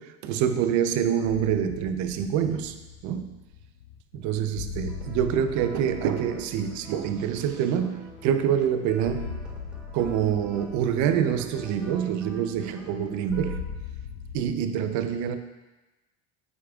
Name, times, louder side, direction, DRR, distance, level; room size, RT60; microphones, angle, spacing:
voice 1, 0.0-3.4 4.1-9.3 9.9-13.6 14.3-15.4, right 9 dB, 60° right, 9 dB, 0.6 m, -26 dB
sound 1, 1.3-14.5, left 6 dB, 90° left, 0.7 m, -40 dB
sound 2, 4.9-13.6, equal, 5° right, 0.8 m, -50 dB
8.4 x 4.9 x 2.3 m, 1.1 s
supercardioid pair, 95°, 32 cm